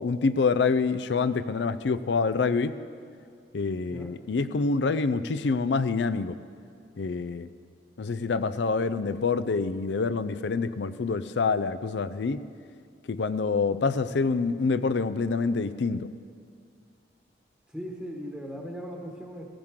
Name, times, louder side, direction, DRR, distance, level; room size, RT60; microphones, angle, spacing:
voice 1, 0.0-2.8 3.5-6.4 7.0-7.5 8.0-12.4 13.1-16.1, left 4 dB, 70° left, 14 dB, 0.5 m, -26 dB
voice 2, 17.7-19.5, equal, ahead, -2 dB, 1.2 m, -38 dB
16.0 x 15.0 x 3.7 m, 2.3 s
head